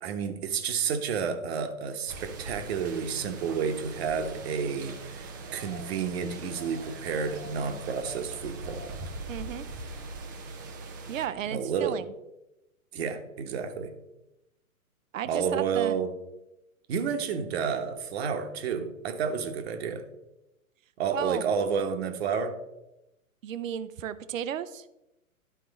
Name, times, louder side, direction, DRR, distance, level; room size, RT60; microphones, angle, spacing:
voice 1, 0.0-9.0 11.5-12.0 12.9-13.9 15.3-16.1 16.9-20.1 21.0-22.6, right 6 dB, 45° right, 8 dB, 1.1 m, -30 dB
sound 1, 2.1-11.3, right 3 dB, 15° right, 0.4 m, -41 dB
voice 2, 9.3-9.7 11.1-12.0 15.1-16.0 21.1-21.5 23.4-24.8, right 10 dB, 65° right, 14 dB, 0.6 m, -34 dB
11.5 x 4.6 x 4.0 m, 0.92 s
figure-of-eight pair, 115°, 43 cm